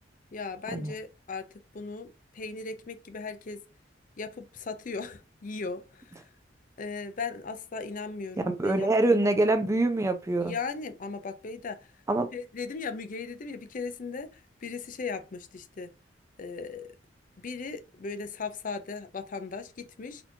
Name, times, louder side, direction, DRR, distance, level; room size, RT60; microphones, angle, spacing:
voice 1, 0.3-3.6 4.2-6.3 6.8-9.3 10.4-11.9 12.3-15.9 16.4-16.9 17.4-20.2, left 4 dB, 45° left, 0.5 m, -37 dB
voice 2, 8.4-10.6 12.1-12.3, right 2 dB, 15° right, 0.4 m, -25 dB
4.2 x 2.8 x 2.7 m
head